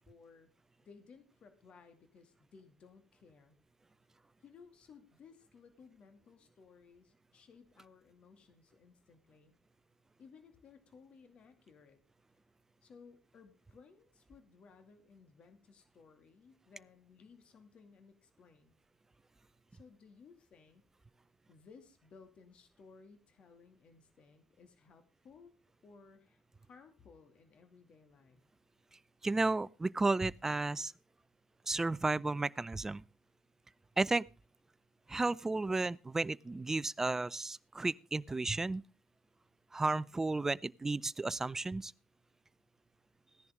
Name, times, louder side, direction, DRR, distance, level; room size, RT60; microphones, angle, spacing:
voice 1, 0.1-0.5 0.8-3.6 4.4-9.6 10.2-12.0 12.8-18.8 19.7-20.8 21.5-25.5 25.8-28.4, left 5 dB, 50° left, 2.4 m, -59 dB
voice 2, 29.2-30.9 31.7-33.0 34.0-34.2 35.1-38.8 39.7-41.9, right 3 dB, 20° right, 0.5 m, -33 dB
16.5 x 10.5 x 3.7 m
hypercardioid pair, 60°, 2 cm